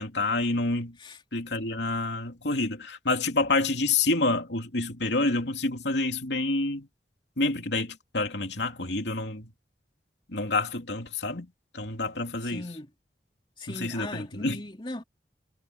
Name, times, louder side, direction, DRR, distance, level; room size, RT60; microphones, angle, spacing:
voice 1, 0.0-1.0 1.3-6.9 7.4-9.5 10.3-11.5 11.7-12.6 13.7-14.6, left 2 dB, 85° left, 2.9 m, -28 dB
voice 2, 12.4-12.9 13.6-15.0, left 1 dB, 30° left, 2.9 m, -38 dB
head